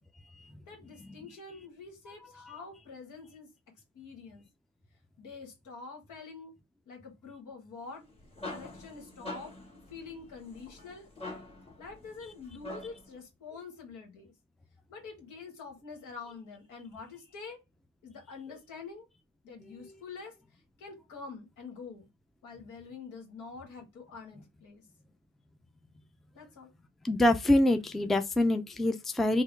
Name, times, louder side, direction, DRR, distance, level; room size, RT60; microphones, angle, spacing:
voice 1, 0.7-3.5 3.9-4.4 5.2-6.5 6.9-8.0 8.5-9.5 9.9-11.1 11.8-14.3 14.9-17.6 18.0-19.1 19.4-20.3 20.8-22.1 22.4-24.8 26.3-26.7, left 4 dB, 85° left, 1.5 m, -46 dB
sound 1, 7.9-13.2, left 2 dB, 20° left, 1.2 m, -45 dB
voice 2, 27.0-29.4, left 1 dB, ahead, 0.4 m, -25 dB
3.6 x 2.3 x 3.2 m
cardioid pair, 90°, 30 cm